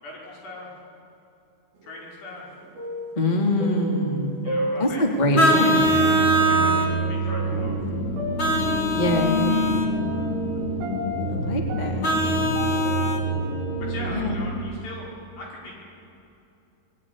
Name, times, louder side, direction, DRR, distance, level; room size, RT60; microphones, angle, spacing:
voice 1, 0.0-0.7 1.8-2.5 4.4-5.0 5.9-7.8 13.8-15.1 15.4-15.7, left 2 dB, 80° left, -3 dB, 7.7 m, -40 dB
sound 1, 1.8-2.4 2.6-5.4 6.2-6.3 7.3-13.3, equal, 65° right, 4.7 m, -34 dB
voice 2, 3.2-4.3 4.8-5.8 8.9-9.3 11.3-12.2 14.1-14.4, left 1 dB, 10° left, 2 dB, 2.5 m, -24 dB
sound 2, 5.3-14.5, right 1 dB, 50° left, 3.5 m, -27 dB
Vehicle horn car horn honking, 5.3-6.9 8.4-9.9 12.0-13.2, right 1 dB, 30° left, 2.7 m, -22 dB
25.5 x 21.5 x 9.9 m, 2.8 s
omnidirectional pair, 4.7 m